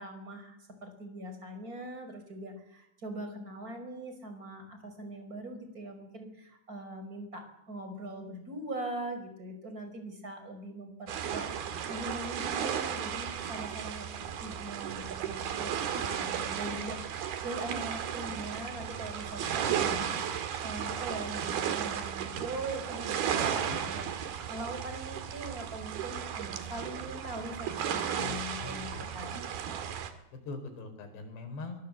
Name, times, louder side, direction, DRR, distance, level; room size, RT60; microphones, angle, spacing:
voice 1, 0.0-11.5 11.9-14.1 14.4-24.1 24.5-29.4, right 1 dB, 20° right, 7 dB, 5.1 m, -41 dB
sound 1, 11.1-30.1, right 8 dB, 65° right, 3.7 m, -34 dB
voice 2, 23.4-23.8 28.2-29.0 30.3-31.8, left 3 dB, 75° left, 6 dB, 6.7 m, -42 dB
24.0 x 24.0 x 8.3 m, 0.81 s
omnidirectional pair, 4.9 m